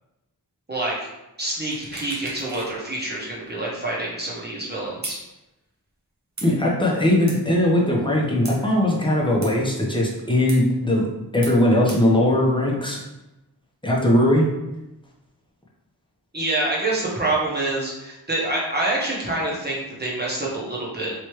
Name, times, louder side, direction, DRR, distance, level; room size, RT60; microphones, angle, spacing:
voice 1, 0.7-1.1 1.4-5.2 16.3-21.1, right 2 dB, 25° right, -5 dB, 1.2 m, -26 dB
sound 1, 1.7-2.8 3.1-3.2 5.0-5.2 6.4-6.5 7.3-7.4 8.4-8.6 9.4-9.5 10.5-10.6 11.4-11.6 11.9-12.0, right 2 dB, 45° right, 0.9 m, -35 dB
voice 2, 6.4-11.1 11.3-13.0 13.8-14.5, left 1 dB, 15° left, -3 dB, 0.9 m, -19 dB
3.2 x 3.0 x 3.1 m, 0.96 s
wide cardioid pair, 40°, 39 cm